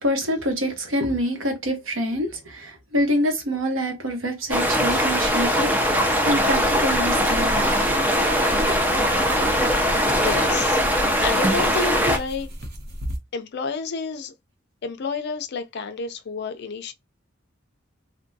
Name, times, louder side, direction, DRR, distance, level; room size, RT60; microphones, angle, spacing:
voice 1, 0.0-7.7 8.7-8.9, equal, 85° right, 1.0 m, -26 dB
sound 1, 4.5-12.2, equal, 10° right, 0.5 m, -21 dB
sound 2, 6.3-13.2, equal, 55° right, 0.7 m, -35 dB
voice 2, 9.5-10.8 11.2-12.5 13.3-14.3 14.8-16.9, left 4 dB, 55° left, 0.5 m, -30 dB
3.5 x 2.2 x 2.6 m
head